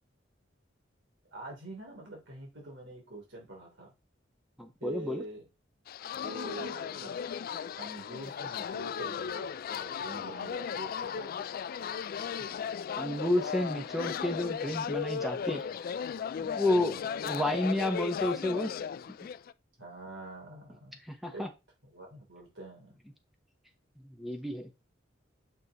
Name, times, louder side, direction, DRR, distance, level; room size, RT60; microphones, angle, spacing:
voice 1, 1.3-3.9 4.8-5.5 6.1-7.1 7.7-11.5 16.7-17.2 19.8-21.0 21.3-21.4 21.8-23.0, right 2 dB, 85° right, -1 dB, 3.2 m, -45 dB
voice 2, 4.6-5.2 13.0-15.6 16.4-18.7 21.1-21.5 24.0-24.7, left 1 dB, ahead, 4 dB, 0.9 m, -31 dB
sound 1, 5.9-19.5, left 7 dB, 50° left, 0.3 m, -36 dB
6.7 x 6.1 x 3.0 m, 0.26 s
head